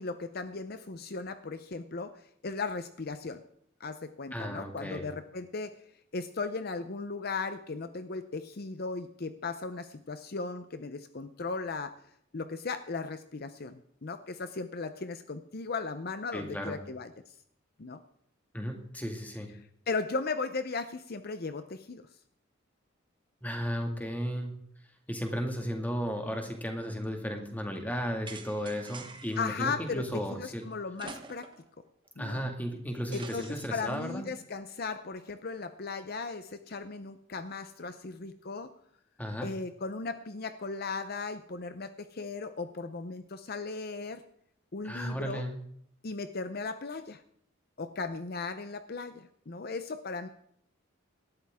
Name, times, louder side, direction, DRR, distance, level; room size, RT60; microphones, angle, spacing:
voice 1, 0.0-2.1 2.4-3.4 3.8-5.7 6.1-12.0 12.3-17.3 17.8-18.0 19.9-22.0 29.4-30.0 30.4-31.5 32.2-32.5 33.1-38.7 39.4-44.2 44.7-45.4 46.0-47.2 47.8-50.3, left 4 dB, 50° left, 10 dB, 0.7 m, -37 dB
voice 2, 4.3-5.1 16.3-16.8 18.5-19.5 23.4-24.5 25.1-30.6 32.2-34.3 39.2-39.5 44.8-45.6, equal, 10° left, 3 dB, 1.9 m, -34 dB
sound 1, 28.3-29.5 31.0-31.7 32.1-32.2 33.1-34.0, right 4 dB, 25° right, 1.1 m, -46 dB
18.5 x 12.5 x 3.6 m, 0.69 s
head